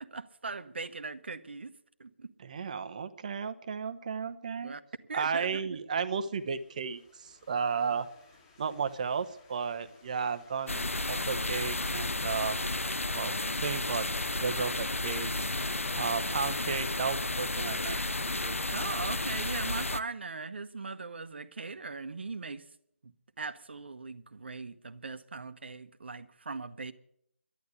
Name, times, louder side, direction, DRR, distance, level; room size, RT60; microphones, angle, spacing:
voice 1, 0.0-1.7 2.0-2.3 4.6-4.8 5.1-5.8 18.7-22.6 23.0-26.9, right 4 dB, 55° right, 1.1 m, -40 dB
voice 2, 2.4-4.8 5.1-8.1 8.6-12.7 13.1-14.1 14.4-15.3 15.9-18.0 18.4-18.6, right 6 dB, 35° right, 0.9 m, -34 dB
sound 1, 6.6-16.9, left 3 dB, 25° left, 3.7 m, -52 dB
sound 2, 10.7-20.0, left 2 dB, 85° left, 0.7 m, -32 dB
12.0 x 10.5 x 8.4 m
figure-of-eight pair, 155°, 7 cm